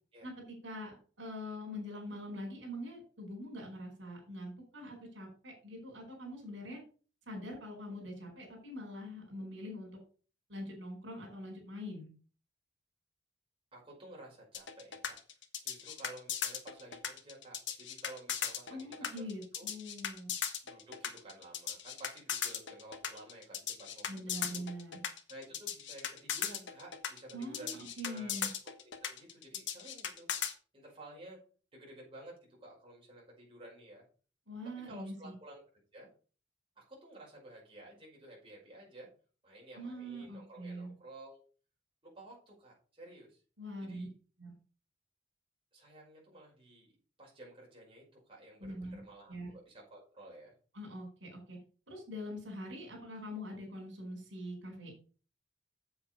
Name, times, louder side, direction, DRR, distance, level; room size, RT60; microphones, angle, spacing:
voice 1, 0.2-6.8 7.3-10.0 10.5-12.1 18.7-20.3 24.1-25.0 27.3-28.5 34.5-35.3 39.8-40.9 43.6-44.1 44.4-44.5 48.6-49.0 49.3-49.5 50.7-51.6 51.9-54.9, equal, 80° right, 0 dB, 4.7 m, -43 dB
voice 2, 13.7-15.2 15.6-19.1 19.5-19.7 20.6-24.6 25.3-30.3 30.7-31.4 31.7-34.0 34.8-35.6 35.9-36.1 36.8-39.1 39.4-41.4 42.0-43.4 43.8-44.1 45.7-46.9 47.2-50.5, right 1 dB, 30° right, -4 dB, 5.4 m, -53 dB
sound 1, 14.5-30.5, left 8 dB, 75° left, 1.5 m, -38 dB
8.0 x 7.8 x 5.2 m, 0.38 s
head